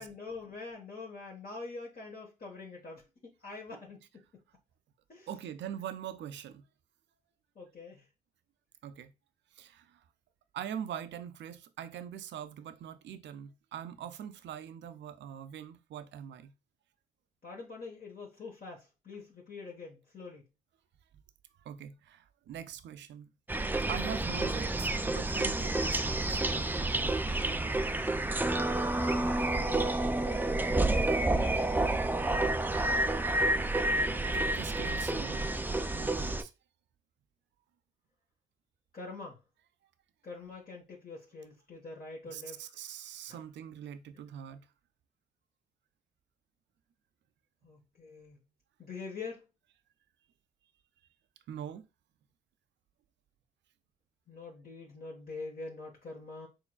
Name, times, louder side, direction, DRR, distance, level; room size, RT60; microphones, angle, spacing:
voice 1, 0.0-4.0 5.1-5.3 7.5-8.0 17.4-20.5 29.2-31.8 38.9-39.4 40.2-42.6 47.6-48.4 48.8-49.5 54.3-56.5, left 4 dB, 45° left, 1.3 m, -45 dB
voice 2, 5.3-6.6 8.8-9.1 9.5-10.0 10.5-16.5 21.6-27.1 33.9-34.1 34.3-35.5 35.9-36.5 42.3-44.7 51.5-51.9, right 9 dB, 65° right, 0.5 m, -43 dB
sound 1, 23.5-36.4, right 2 dB, 10° right, 0.4 m, -29 dB
4.4 x 3.1 x 2.3 m
hypercardioid pair, 40°, 20 cm